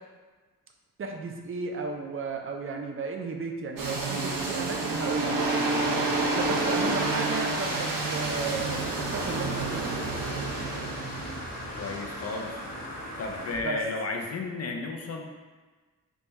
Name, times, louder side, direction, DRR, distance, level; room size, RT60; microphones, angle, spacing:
voice 1, 1.0-5.4 6.2-10.1 13.6-13.8, right 4 dB, 40° right, 3 dB, 0.4 m, -34 dB
sound 1, 3.8-13.6, right 2 dB, 80° right, 0.7 m, -30 dB
sound 2, 6.8-13.5, left 1 dB, 85° left, 1.2 m, -39 dB
voice 2, 11.8-12.6 13.2-15.2, left 3 dB, 50° left, 2 dB, 0.4 m, -33 dB
3.5 x 2.3 x 3.9 m, 1.4 s
wide cardioid pair, 155°, 33 cm